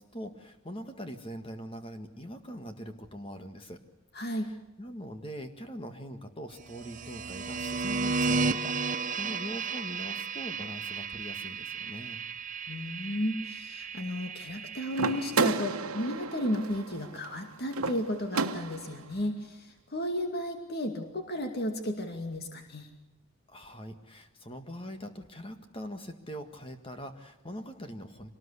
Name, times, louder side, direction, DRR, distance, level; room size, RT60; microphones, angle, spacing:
voice 1, 0.0-3.8 4.2-12.2 23.5-28.3, equal, 25° left, 7 dB, 1.8 m, -42 dB
voice 2, 4.1-4.5 12.7-22.9, equal, 45° left, 5 dB, 2.4 m, -33 dB
sound 1, 6.7-15.5, right 4 dB, 35° right, 0.9 m, -34 dB
sound 2, 14.9-19.0, right 4 dB, 80° right, 1.3 m, -32 dB
25.0 x 19.0 x 8.3 m, 0.93 s
head